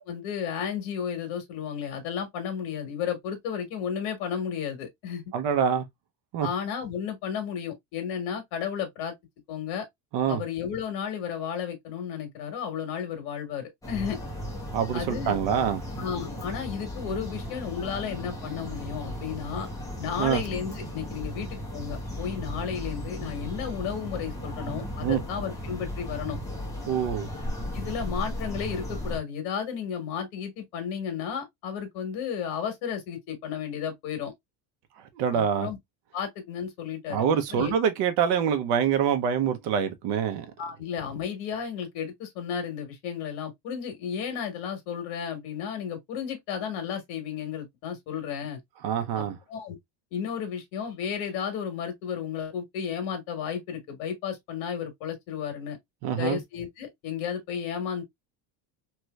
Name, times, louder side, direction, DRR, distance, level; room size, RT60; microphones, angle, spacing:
voice 1, 0.0-5.3 6.4-9.1 9.5-9.9 10.3-14.2 14.9-15.4 16.0-19.7 20.0-26.4 27.7-34.3 35.3-35.8 36.1-37.2 37.5-37.7 40.6-48.6 49.1-49.2 49.5-49.8 50.1-55.8 56.2-58.0, left 7 dB, 70° left, 1.6 m, -33 dB
voice 2, 5.3-5.9 6.3-6.5 10.1-10.4 14.7-15.8 20.2-20.4 25.0-25.2 26.9-27.3 35.1-35.7 37.1-40.5 48.8-49.4 56.0-56.4, right 8 dB, 50° right, 0.8 m, -25 dB
sound 1, 13.8-29.2, equal, 5° left, 1.0 m, -36 dB
3.2 x 3.0 x 2.3 m
cardioid pair, 160°, 49 cm